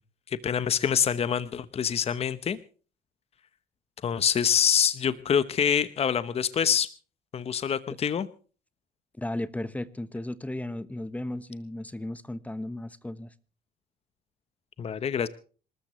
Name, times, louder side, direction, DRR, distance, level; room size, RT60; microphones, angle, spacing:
voice 1, 0.4-2.6 4.0-6.9 7.3-8.3 14.8-15.3, left 8 dB, 35° left, 14 dB, 0.9 m, -25 dB
voice 2, 9.2-13.3, left 1 dB, 10° left, 15 dB, 1.1 m, -35 dB
26.5 x 13.5 x 3.2 m, 0.38 s
cardioid pair, 110°, 17 cm